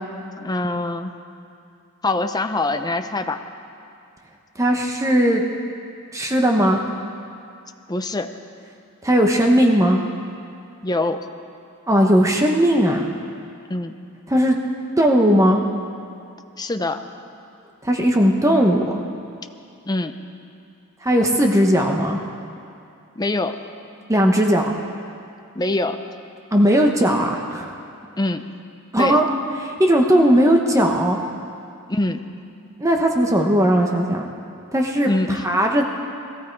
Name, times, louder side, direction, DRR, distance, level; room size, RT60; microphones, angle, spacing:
voice 1, 0.4-1.2 2.0-3.4 7.9-8.3 10.8-11.2 13.7-14.0 16.6-17.0 19.9-20.2 23.2-23.6 25.5-26.0 28.2-28.4 29.0-29.2 31.9-32.2 35.1-35.5, left 2 dB, 20° left, 7 dB, 0.7 m, -24 dB
voice 2, 4.6-5.4 6.1-6.8 9.0-10.0 11.9-13.1 14.3-14.6 15.0-15.6 17.8-18.8 21.0-22.2 24.1-24.7 26.5-27.7 28.9-29.3 29.6-31.2 32.8-34.3 34.7-35.8, equal, 15° right, 1 dB, 1.0 m, -17 dB
20.0 x 14.5 x 4.6 m, 2.5 s
head